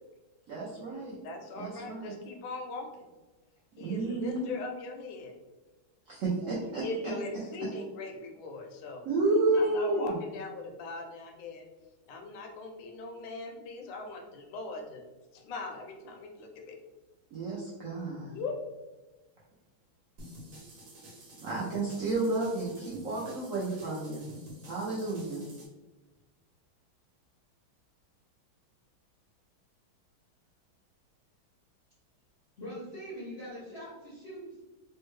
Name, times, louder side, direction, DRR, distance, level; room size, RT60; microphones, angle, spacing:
voice 1, 0.5-1.2 1.6-2.1 3.8-4.5 6.1-6.8 7.6-7.7 9.0-10.2 17.3-18.4 21.4-24.2 24.7-25.4, right 2 dB, 80° right, -6 dB, 0.7 m, -31 dB
voice 2, 1.2-2.9 3.8-5.3 6.4-9.1 9.5-11.6 12.1-15.0 15.3-16.7 18.3-18.6, left 3 dB, 75° left, 3 dB, 1.2 m, -40 dB
sound 1, 20.2-25.7, equal, 65° right, 1.3 m, -49 dB
voice 3, 32.6-34.6, equal, 60° left, -7 dB, 0.6 m, -42 dB
3.4 x 2.2 x 3.1 m, 1.2 s
omnidirectional pair, 2.2 m